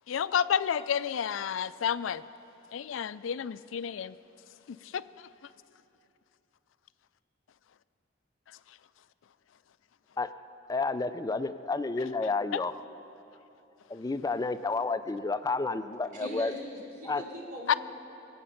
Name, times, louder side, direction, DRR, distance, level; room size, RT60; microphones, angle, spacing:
voice 1, 0.1-2.2 2.7-4.2 4.7-5.0 12.5-12.6 17.7-17.8, left 8 dB, 85° left, 16 dB, 0.4 m, -30 dB
voice 2, 10.7-12.7 13.9-16.5 17.1-17.2, left 3 dB, 20° left, 12 dB, 0.4 m, -30 dB
voice 3, 16.1-17.8, left 1 dB, 45° right, -2 dB, 3.4 m, -41 dB
24.0 x 8.6 x 5.8 m, 3.0 s
head